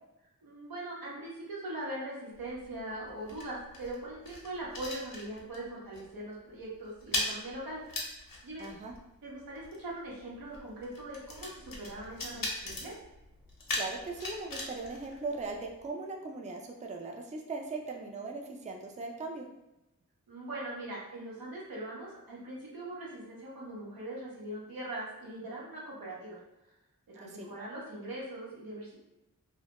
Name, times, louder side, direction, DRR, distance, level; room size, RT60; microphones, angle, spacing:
voice 1, 0.4-7.8 8.4-8.7 9.2-12.9 20.3-26.4 27.1-29.1, right 1 dB, 90° right, -5 dB, 0.8 m, -41 dB
sound 1, 2.3-5.7 5.9-6.2 6.5-15.9, left 2 dB, 70° left, 0.6 m, -40 dB
voice 2, 8.6-8.9 13.7-19.5 27.2-27.5, right 3 dB, 20° right, 1 dB, 0.3 m, -39 dB
2.1 x 2.1 x 2.8 m, 0.94 s
cardioid pair, 40°, 34 cm